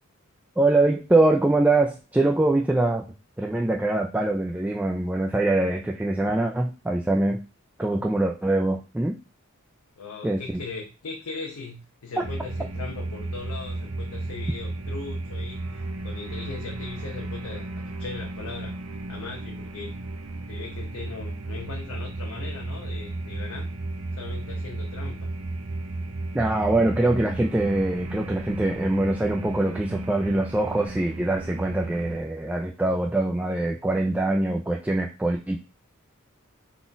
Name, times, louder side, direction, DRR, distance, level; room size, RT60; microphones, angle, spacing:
voice 1, 0.6-3.0 3.4-7.4 7.8-9.2 10.2-10.4 26.3-35.6, right 2 dB, 5° right, 0 dB, 0.3 m, -23 dB
voice 2, 10.0-18.8 19.1-19.9 20.5-23.7 24.2-25.3, left 4 dB, 90° left, 0 dB, 0.7 m, -39 dB
sound 1, 12.2-32.2, right 2 dB, 85° right, 0.6 m, -34 dB
3.8 x 2.3 x 3.8 m, 0.30 s
head